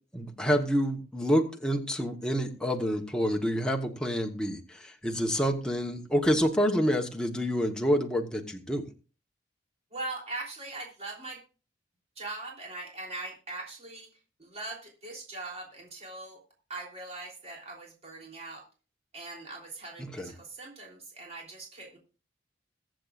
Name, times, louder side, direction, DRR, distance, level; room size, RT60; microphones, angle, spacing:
voice 1, 0.1-8.9 20.0-20.3, equal, 5° left, 2 dB, 1.1 m, -28 dB
voice 2, 9.9-11.4 12.2-14.1 14.4-16.4 16.7-18.6 19.1-22.0, right 2 dB, 35° right, -1 dB, 3.3 m, -41 dB
22.0 x 7.8 x 2.5 m, 0.35 s
head